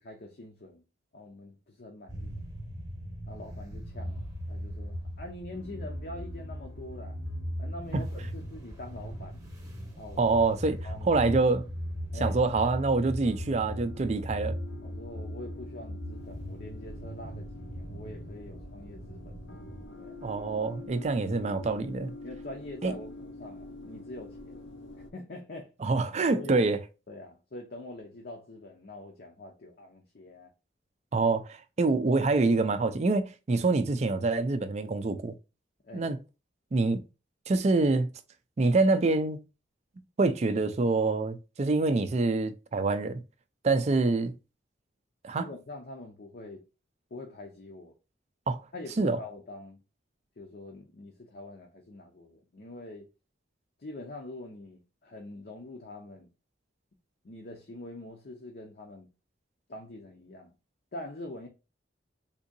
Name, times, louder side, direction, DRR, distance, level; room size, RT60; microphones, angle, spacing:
voice 1, 0.0-0.8 1.1-2.4 3.3-7.2 7.6-9.5 10.0-10.3 10.8-11.3 12.1-12.4 14.1-14.3 14.8-19.3 20.0-20.2 22.2-24.6 25.1-25.7 26.3-26.7 27.1-30.5 35.8-36.1 43.7-43.8 44.0-44.1 45.3-46.6 47.1-47.9 48.7-49.8 50.4-53.1 53.8-56.3 57.2-59.1 59.7-60.5 60.9-61.5, left 2 dB, 50° left, 0.6 m, -44 dB
sound 1, 2.1-19.9, equal, 15° right, 0.9 m, -39 dB
sound 2, 5.5-25.1, left 2 dB, 80° left, 0.9 m, -48 dB
voice 2, 10.2-10.8 11.0-11.6 12.2-14.6 20.2-22.1 22.8-22.9 25.8-26.8 31.1-35.3 35.9-36.2 36.7-37.0 37.5-38.1 38.6-39.4 40.2-43.2 43.6-44.3 45.2-45.5 48.5-48.6 49.0-49.2, right 3 dB, 35° right, 0.4 m, -26 dB
3.7 x 2.7 x 2.5 m
head